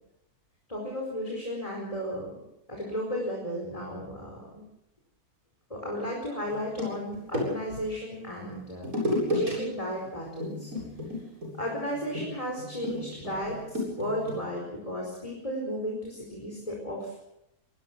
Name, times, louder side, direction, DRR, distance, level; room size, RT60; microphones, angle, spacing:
voice 1, 0.7-2.3 2.7-4.6 5.7-8.9 9.3-10.7 11.6-17.2, equal, 20° left, -2 dB, 4.9 m, -34 dB
sound 1, 6.4-7.8 8.8-9.5 9.8-10.1 10.4-14.4, left 1 dB, 60° right, 8.7 m, -33 dB
24.5 x 19.5 x 6.1 m, 0.84 s
omnidirectional pair, 1.6 m